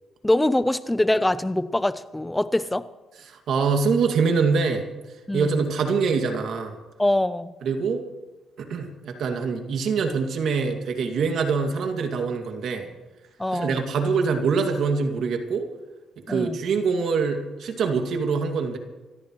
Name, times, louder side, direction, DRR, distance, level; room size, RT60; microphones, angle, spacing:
voice 1, 0.2-2.9 5.3-5.7 7.0-7.5 13.4-13.8 16.3-16.6, left 1 dB, 10° left, 14 dB, 0.7 m, -23 dB
voice 2, 3.3-4.9 5.3-6.8 7.6-8.0 8.6-12.9 13.5-15.7 16.3-18.8, right 5 dB, 70° right, 5 dB, 2.3 m, -24 dB
26.5 x 13.5 x 3.2 m, 1.2 s
cardioid pair, 90°, 0 cm